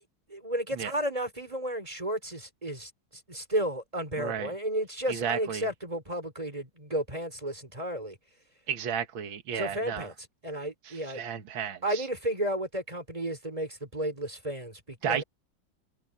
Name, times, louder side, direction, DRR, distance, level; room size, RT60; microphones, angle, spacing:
voice 1, 0.3-2.9 3.3-8.2 9.5-11.2 11.8-15.2, right 1 dB, 15° right, 4.3 m, -33 dB
voice 2, 4.2-4.5 5.1-5.6 8.7-10.1 10.9-12.1 15.0-15.2, right 8 dB, 75° right, 2.3 m, -33 dB
omnidirectional pair, 2.2 m